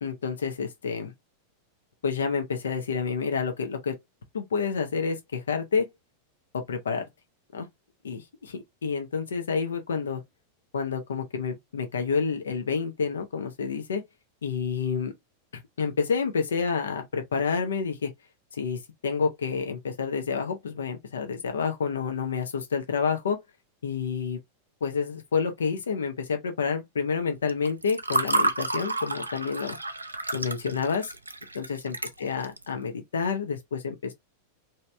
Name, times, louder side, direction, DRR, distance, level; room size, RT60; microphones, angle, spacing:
voice 1, 0.0-1.1 2.0-3.9 4.3-5.8 6.7-7.0 7.5-7.7 8.0-10.2 10.7-14.0 14.4-15.1 15.5-18.1 18.5-23.4 23.8-24.4 24.8-29.8 30.3-31.1 31.5-34.1, left 5 dB, 65° left, 0.7 m, -29 dB
Water / Fill (with liquid), 27.5-32.6, right 2 dB, 80° right, 0.5 m, -30 dB
3.1 x 2.8 x 3.3 m
figure-of-eight pair, 90°, 0 cm